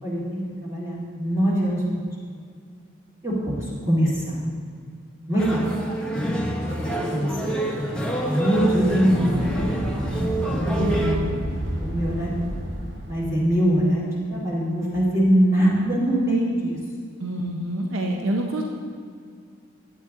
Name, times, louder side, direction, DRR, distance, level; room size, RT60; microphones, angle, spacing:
voice 1, 0.0-2.1 3.2-4.4 5.3-5.6 6.8-7.6 8.2-9.9 11.8-12.3 13.1-16.8, equal, 15° right, -9 dB, 2.0 m, -23 dB
sound 1, 5.4-11.2, right 1 dB, 5° left, 0.8 m, -26 dB
sound 2, 8.6-13.4, equal, 60° right, 1.9 m, -31 dB
voice 2, 10.8-11.3 17.2-18.6, right 1 dB, 85° right, 1 dB, 0.8 m, -27 dB
11.0 x 8.3 x 3.7 m, 2.2 s
head